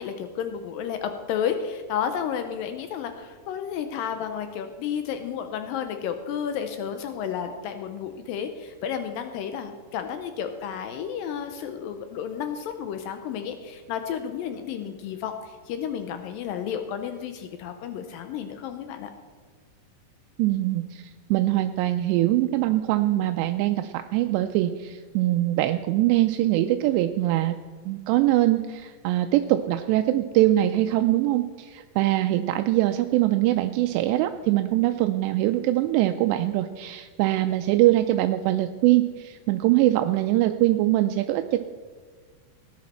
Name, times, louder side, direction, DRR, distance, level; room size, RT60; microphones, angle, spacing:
voice 1, 0.0-19.1, left 8 dB, 90° left, 7 dB, 2.0 m, -32 dB
voice 2, 20.4-27.6 27.9-41.6, right 15 dB, 85° right, 7 dB, 2.7 m, -23 dB
18.5 x 10.5 x 4.2 m, 1.5 s
omnidirectional pair, 4.9 m